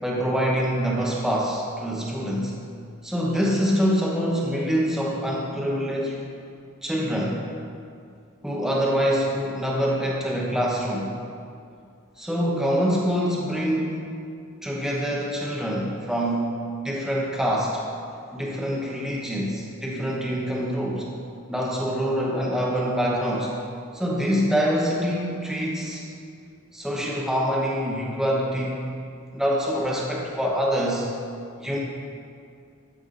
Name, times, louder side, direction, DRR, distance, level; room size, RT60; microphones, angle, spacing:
voice 1, 0.0-2.6 3.0-6.2 6.8-7.4 8.4-11.1 12.2-14.1 14.6-17.8 18.3-21.1 21.5-23.5 23.9-26.0 26.7-28.9 29.3-31.1 31.6-31.8, equal, ahead, -4 dB, 0.8 m, -25 dB
13.5 x 5.6 x 2.5 m, 2.4 s
head